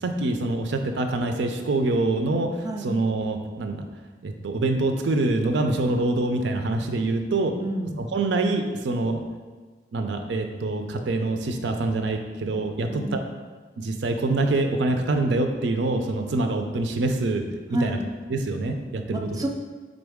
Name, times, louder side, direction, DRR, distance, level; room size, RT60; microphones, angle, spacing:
voice 1, 0.0-2.5 2.8-3.8 4.2-7.6 8.0-9.2 9.9-13.0 13.8-17.5 17.8-18.0 18.3-19.3, right 2 dB, 90° right, 5 dB, 0.5 m, -25 dB
voice 2, 2.6-2.9 7.6-8.1 12.8-13.2 17.7-18.0 19.1-19.5, right 1 dB, 20° right, 2 dB, 0.3 m, -29 dB
4.0 x 3.8 x 3.5 m, 1.4 s
head